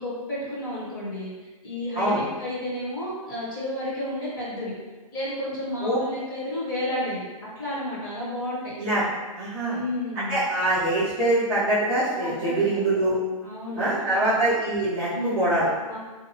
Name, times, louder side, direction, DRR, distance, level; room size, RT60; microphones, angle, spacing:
voice 1, 0.0-4.7 5.1-7.2 7.6-8.7 9.6-10.4 12.2-12.8 13.4-14.3 15.1-15.6 15.9-16.0, left 1 dB, 35° left, -7 dB, 0.9 m, -31 dB
voice 2, 9.3-9.8 10.1-13.2 13.8-15.7, right 1 dB, 5° right, -18 dB, 0.5 m, -24 dB
2.6 x 2.1 x 2.7 m, 1.2 s
hypercardioid pair, 180°, 18 cm